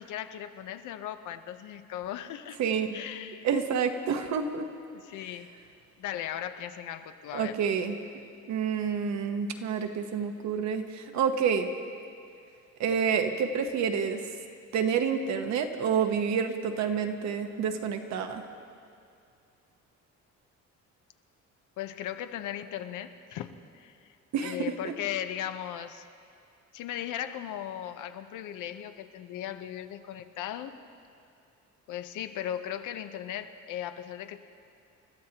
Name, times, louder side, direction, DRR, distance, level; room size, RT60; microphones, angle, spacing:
voice 1, 0.0-2.6 2.9-3.5 4.9-5.5 6.0-7.6 21.8-24.1 24.4-26.0 26.7-30.8 31.9-34.4, left 11 dB, 85° left, 8 dB, 0.9 m, -37 dB
voice 2, 2.6-3.0 3.4-4.7 7.3-8.0 8.5-11.7 12.8-14.2 14.7-18.4 24.3-24.9, right 6 dB, 65° right, 6 dB, 1.2 m, -28 dB
30.0 x 13.5 x 2.9 m, 2.4 s
cardioid pair, 170°, 30 cm